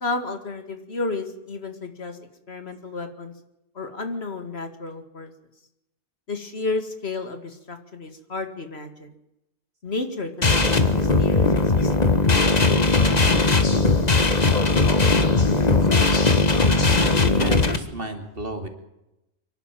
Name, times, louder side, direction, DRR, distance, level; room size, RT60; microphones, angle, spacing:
voice 1, 0.0-2.2 2.5-3.3 3.8-5.3 6.3-9.1 9.8-12.2, left 3 dB, 65° left, 7 dB, 2.4 m, -32 dB
sound 1, 10.4-17.8, left 3 dB, 35° left, 1.6 m, -19 dB
voice 2, 17.0-18.7, right 1 dB, 55° right, 6 dB, 3.0 m, -33 dB
24.5 x 12.0 x 9.2 m, 0.89 s
omnidirectional pair, 1.2 m